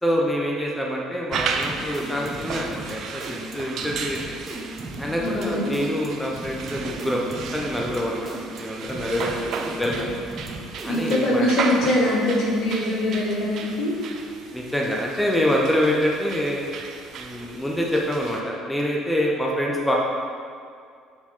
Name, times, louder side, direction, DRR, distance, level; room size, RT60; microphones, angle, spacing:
voice 1, 0.0-4.2 5.0-8.3 8.6-10.1 10.8-11.5 14.5-16.6 17.2-20.0, equal, 5° left, -2 dB, 0.9 m, -26 dB
sound 1, 1.3-11.4, right 1 dB, 30° right, 1.0 m, -37 dB
sound 2, 1.3-18.4, right 5 dB, 50° right, 0.5 m, -35 dB
voice 2, 5.2-5.7 10.9-13.9, left 1 dB, 55° left, -4 dB, 1.3 m, -23 dB
7.0 x 4.3 x 4.1 m, 2.2 s
figure-of-eight pair, 50°, 0 cm